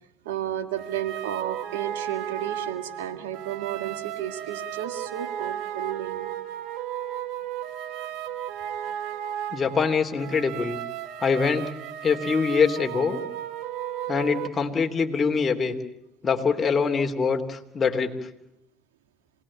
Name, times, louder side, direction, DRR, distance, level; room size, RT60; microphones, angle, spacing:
voice 1, 0.3-6.3, right 11 dB, 90° right, 8 dB, 2.0 m, -32 dB
sound 1, 0.8-14.5, right 11 dB, 75° right, 1.4 m, -34 dB
voice 2, 9.5-10.8 11.2-11.7 12.0-13.2 14.1-15.7 16.2-18.1, left 5 dB, 35° left, 4 dB, 3.2 m, -24 dB
27.5 x 19.5 x 8.8 m, 0.80 s
hypercardioid pair, 70°, 0 cm